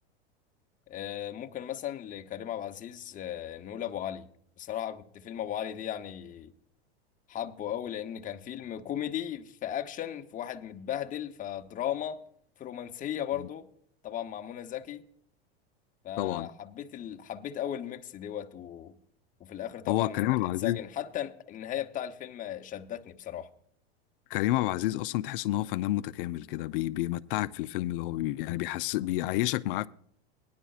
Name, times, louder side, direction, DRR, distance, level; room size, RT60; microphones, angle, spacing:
voice 1, 0.9-4.3 4.6-6.5 7.3-12.2 12.6-13.7 14.0-15.0 16.0-18.9 19.4-23.5, left 10 dB, 25° left, 0.8 m, -36 dB
voice 2, 16.2-16.5 19.9-20.8 24.3-29.9, left 16 dB, 60° left, 0.5 m, -29 dB
18.0 x 10.5 x 2.4 m
hypercardioid pair, 100°, 31 cm